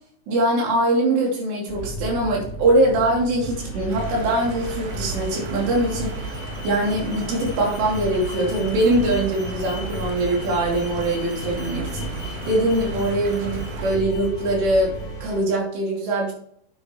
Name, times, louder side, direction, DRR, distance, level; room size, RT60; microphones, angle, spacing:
voice 1, 0.3-14.9 15.2-16.3, right 1 dB, 85° right, -2 dB, 5.2 m, -22 dB
sound 1, 1.7-15.4, right 2 dB, 35° left, 3.3 m, -33 dB
Alarm, 3.4-15.4, left 4 dB, 70° left, 3.3 m, -42 dB
sound 2, 3.9-13.9, right 3 dB, 60° right, 2.6 m, -38 dB
9.9 x 8.7 x 3.2 m, 0.64 s
omnidirectional pair, 4.8 m